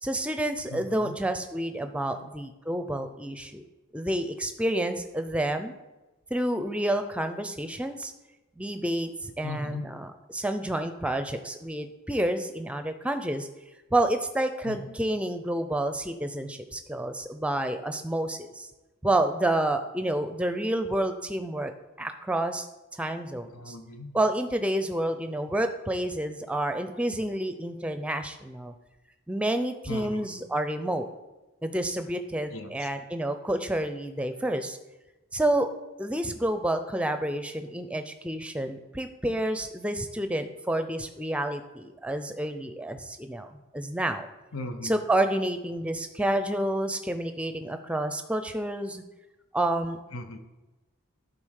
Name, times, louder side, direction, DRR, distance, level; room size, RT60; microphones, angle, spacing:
voice 1, 0.0-3.6 3.9-5.7 6.3-8.1 8.6-9.1 9.4-13.5 13.9-18.7 19.0-21.7 22.0-22.7 23.0-23.8 24.1-28.7 29.3-31.1 31.6-34.8 35.3-35.7 36.0-44.3 44.8-49.0 49.5-50.0, right 1 dB, 5° right, 8 dB, 0.5 m, -29 dB
voice 2, 0.7-1.2 1.8-2.3 9.4-9.9 14.6-14.9 23.5-24.2 29.9-30.3 32.5-32.9 44.5-45.0 50.1-50.4, left 2 dB, 80° left, 7 dB, 1.0 m, -39 dB
11.0 x 4.1 x 6.4 m, 1.1 s
head